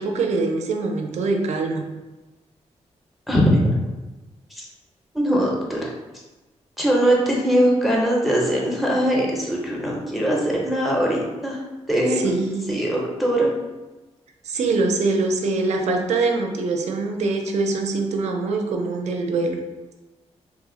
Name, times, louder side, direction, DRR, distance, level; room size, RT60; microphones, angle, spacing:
voice 1, 0.0-1.9 12.1-12.8 14.5-19.6, right 3 dB, 80° right, 3 dB, 0.4 m, -23 dB
voice 2, 3.3-3.6 4.6-4.7 5.1-5.9 6.8-11.6 11.9-12.3 12.7-13.5, equal, ahead, -3 dB, 0.4 m, -21 dB
3.1 x 2.0 x 3.5 m, 1.1 s
wide cardioid pair, 170°, 12 cm